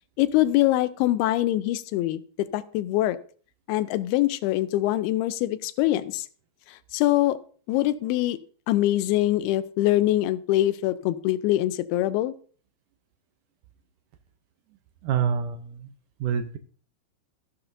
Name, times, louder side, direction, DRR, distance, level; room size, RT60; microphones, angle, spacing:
voice 1, 0.2-3.2 3.7-6.3 6.7-7.4 7.7-8.4 8.7-12.4, left 15 dB, 90° left, 13 dB, 2.6 m, -24 dB
voice 2, 15.0-15.9 16.2-16.6, right 7 dB, 80° right, 9 dB, 1.9 m, -26 dB
14.0 x 11.0 x 2.6 m, 0.43 s
omnidirectional pair, 4.4 m